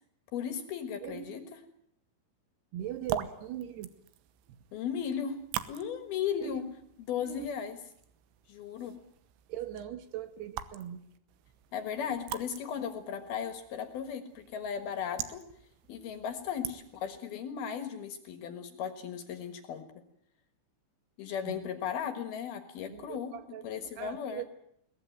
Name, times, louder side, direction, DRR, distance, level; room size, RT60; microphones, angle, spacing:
voice 1, 0.3-1.6 4.7-5.4 5.7-6.6 7.1-7.8 8.5-9.0 11.7-15.4 15.9-19.9 21.2-23.3 23.6-24.4, left 8 dB, 65° left, 9 dB, 3.0 m, -36 dB
voice 2, 1.0-1.4 2.7-3.9 4.5-4.6 6.4-6.7 7.2-7.5 9.5-11.1 21.4-21.6 22.9-24.5, right 11 dB, 70° right, 11 dB, 2.9 m, -41 dB
sound 1, 2.8-17.2, right 11 dB, 85° right, 3.6 m, -44 dB
22.0 x 19.5 x 9.2 m, 0.71 s
omnidirectional pair, 5.5 m